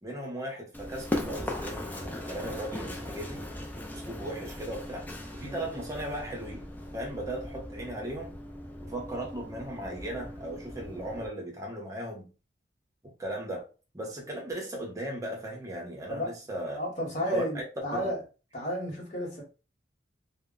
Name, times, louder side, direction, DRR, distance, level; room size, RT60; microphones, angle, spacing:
voice 1, 0.0-3.5 3.9-8.4 8.8-12.3 13.2-13.7 13.9-16.8 17.3-17.6 17.9-18.2, right 1 dB, 15° right, 0.7 m, -37 dB
Run, 0.7-11.3, left 1 dB, 10° left, 0.3 m, -39 dB
voice 2, 16.7-18.2 18.5-19.4, equal, 40° left, 1.0 m, -32 dB
2.1 x 2.0 x 3.7 m
head